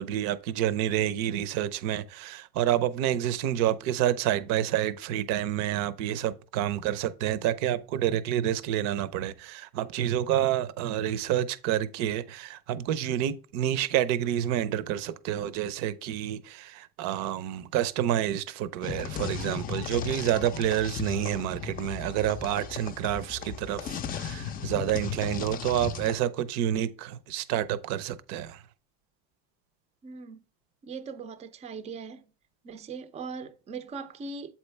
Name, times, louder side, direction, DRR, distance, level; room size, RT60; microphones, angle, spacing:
voice 1, 0.0-28.6, right 11 dB, 60° right, 0.7 m, -28 dB
sound 1, 18.8-26.2, left 8 dB, 30° left, 0.5 m, -36 dB
voice 2, 30.0-30.4 30.8-32.2 32.6-34.5, right 5 dB, 20° right, 0.5 m, -40 dB
7.7 x 4.4 x 3.3 m
cardioid pair, 145°, 32 cm